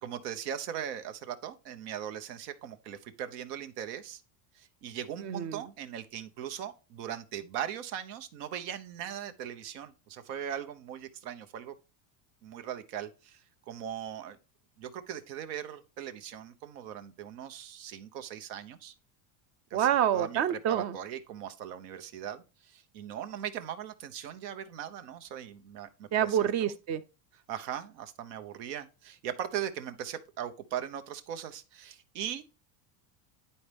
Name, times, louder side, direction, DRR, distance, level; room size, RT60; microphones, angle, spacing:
voice 1, 0.0-4.2 4.5-11.7 12.4-14.4 14.8-18.9 19.7-26.4 27.3-32.5, right 9 dB, 85° right, 1.0 m, -39 dB
voice 2, 5.2-5.6 19.7-20.9 26.1-27.0, right 10 dB, 40° right, 0.4 m, -27 dB
10.5 x 4.3 x 3.4 m
supercardioid pair, 145°, 47 cm